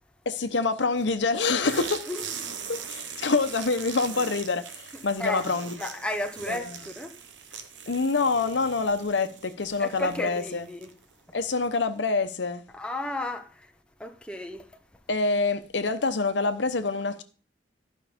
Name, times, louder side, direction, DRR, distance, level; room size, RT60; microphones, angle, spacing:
voice 1, 0.3-2.0 2.7-5.8 6.5-6.6 7.9-10.7 11.3-12.6 15.1-17.2, left 3 dB, 75° left, 0.9 m, -26 dB
sound 1, 1.6-11.1, right 6 dB, 85° right, 1.2 m, -41 dB
voice 2, 5.2-5.5 5.8-7.2 9.8-10.9 11.3-11.4 12.7-13.7 14.0-14.8, left 1 dB, 5° left, 0.8 m, -34 dB
12.5 x 5.5 x 5.1 m
head